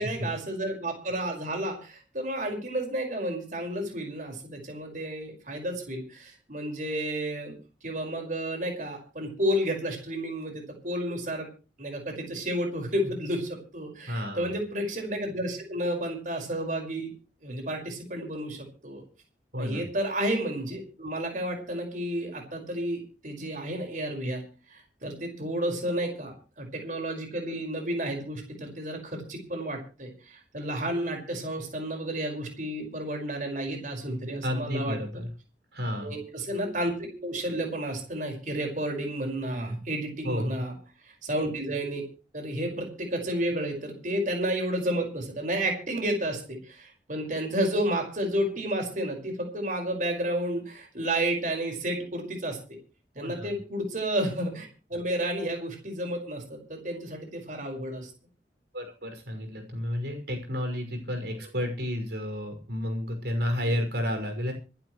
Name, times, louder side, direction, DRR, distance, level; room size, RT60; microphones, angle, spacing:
voice 1, 0.0-7.5 7.8-11.5 11.8-17.1 17.4-19.0 19.5-35.0 36.0-40.7 41.1-42.0 42.3-52.8 53.2-58.1 63.6-63.7, right 1 dB, 45° right, 3 dB, 5.4 m, -31 dB
voice 2, 14.1-14.5 19.5-19.8 34.4-35.3 35.7-36.1 40.2-40.6 53.2-53.5 58.7-64.5, left 1 dB, 70° right, 4 dB, 6.2 m, -31 dB
26.0 x 11.5 x 3.2 m, 0.35 s
head